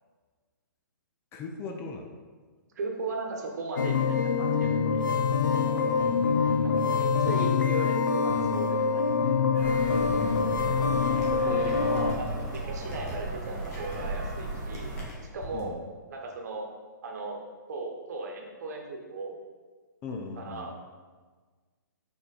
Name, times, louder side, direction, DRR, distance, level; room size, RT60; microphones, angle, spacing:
voice 1, 1.3-2.1 5.5-7.0 9.9-11.3 15.5-15.8 20.0-20.7, left 3 dB, 25° left, 3 dB, 0.5 m, -40 dB
voice 2, 2.7-5.1 6.3-9.1 10.8-12.3 12.5-14.9 15.3-15.7 16.1-16.7 17.0-17.4 17.7-19.4 20.4-20.7, right 3 dB, 55° right, 2 dB, 1.1 m, -37 dB
sound 1, 3.8-12.2, left 5 dB, 70° left, 0.7 m, -25 dB
sound 2, 9.5-15.1, right 2 dB, 40° right, 1.4 m, -35 dB
sound 3, 11.0-15.6, left 1 dB, 45° left, 1.6 m, -45 dB
5.1 x 4.4 x 4.2 m, 1.4 s
figure-of-eight pair, 125°, 11 cm